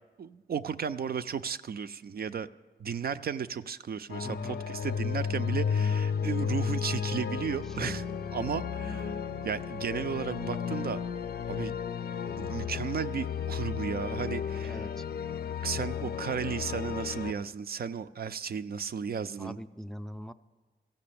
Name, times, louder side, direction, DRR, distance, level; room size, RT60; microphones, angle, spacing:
voice 1, 0.2-2.5 2.8-8.0 8.3-9.2 9.4-11.0 11.5-11.7 12.4-14.9 15.6-19.6, right 7 dB, 60° right, 11 dB, 0.4 m, -34 dB
sound 1, 4.1-17.3, left 7 dB, 60° left, 0.5 m, -33 dB
voice 2, 4.2-4.6 7.8-8.0 14.7-15.0 19.4-20.3, equal, ahead, 9 dB, 0.4 m, -40 dB
14.5 x 5.9 x 8.6 m, 1.3 s
cardioid pair, 75°, 18 cm